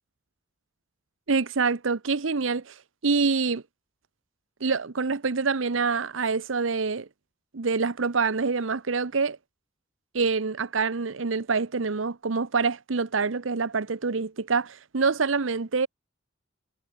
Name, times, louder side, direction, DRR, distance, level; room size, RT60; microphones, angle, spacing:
voice 1, 1.3-3.6 4.6-7.1 7.5-9.4 10.1-15.9, right 4 dB, 85° right, 0.9 m, -26 dB
head